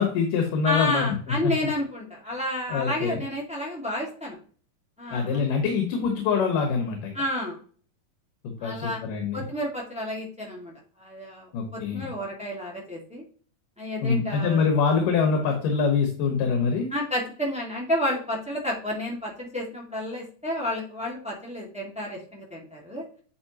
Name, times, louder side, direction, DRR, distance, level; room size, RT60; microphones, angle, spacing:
voice 1, 0.0-1.5 2.7-3.2 5.1-7.1 8.4-9.5 11.5-12.1 14.0-16.9, left 5 dB, 75° left, 3 dB, 2.8 m, -25 dB
voice 2, 0.6-4.4 5.0-5.5 7.1-7.6 8.6-9.0 9.3-10.7 11.0-13.2 13.8-14.7 16.9-23.0, left 1 dB, 5° right, -3 dB, 0.8 m, -30 dB
9.6 x 5.3 x 2.9 m, 0.43 s
omnidirectional pair, 3.9 m